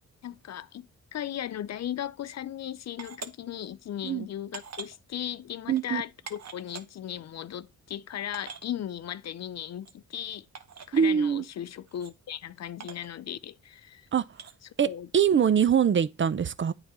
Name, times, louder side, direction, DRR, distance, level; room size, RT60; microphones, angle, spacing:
voice 1, 0.2-0.9 1.1-10.5 10.9-14.1 14.6-15.1, left 10 dB, 50° left, 0.5 m, -37 dB
sound 1, 3.0-3.3 4.0-4.1 4.5-5.0 5.7-5.8 6.3-6.8 7.7-7.8 7.9-8.0 8.3-8.7 9.8-9.9 10.5-10.9 11.9-12.1 12.8-13.1 14.3-14.5, right 6 dB, 50° right, 1.1 m, -43 dB
voice 2, 5.7-6.0 10.9-11.4 14.1-14.2 14.8-16.7, right 8 dB, 35° right, 0.5 m, -23 dB
8.6 x 4.0 x 4.1 m
supercardioid pair, 60°, 34 cm